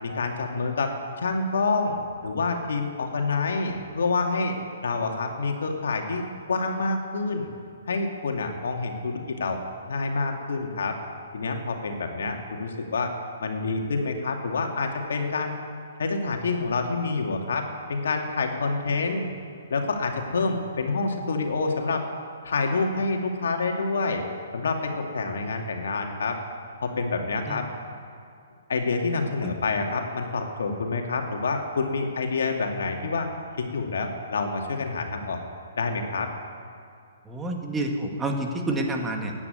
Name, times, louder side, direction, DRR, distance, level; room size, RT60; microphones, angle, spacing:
voice 1, 0.0-7.5 7.9-9.6 9.9-11.0 11.3-13.1 13.4-15.5 16.0-19.3 19.7-22.0 22.4-24.2 24.5-26.4 26.8-27.6 28.7-33.3 33.6-35.4 35.8-36.3, left 3 dB, 75° left, 3 dB, 2.5 m, -27 dB
voice 2, 37.3-39.3, right 2 dB, 10° right, 2 dB, 2.0 m, -28 dB
15.5 x 9.9 x 9.5 m, 2.4 s
hypercardioid pair, 145°, 0 cm